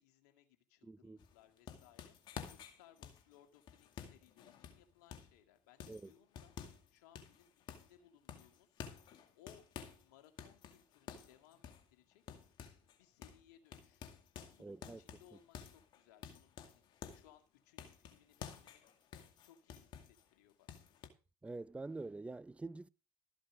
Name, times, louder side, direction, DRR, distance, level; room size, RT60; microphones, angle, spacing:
voice 1, 0.0-2.1 2.5-6.5 6.9-8.8 9.3-9.6 10.0-12.2 13.0-14.2 14.5-16.8 17.1-18.8 19.4-20.8, left 11 dB, 75° left, 2.2 m, -66 dB
voice 2, 0.8-1.2 5.9-6.1 14.6-15.0 21.4-22.9, right 3 dB, 15° right, 0.7 m, -46 dB
sound 1, 1.2-5.4 5.8-6.9 7.1-8.0 8.3-10.0 10.4-13.0 13.2-13.4 13.7-17.3 17.8-20.2 20.7-21.1, left 8 dB, 55° left, 2.2 m, -51 dB
13.5 x 7.7 x 5.1 m
hypercardioid pair, 70°, 9 cm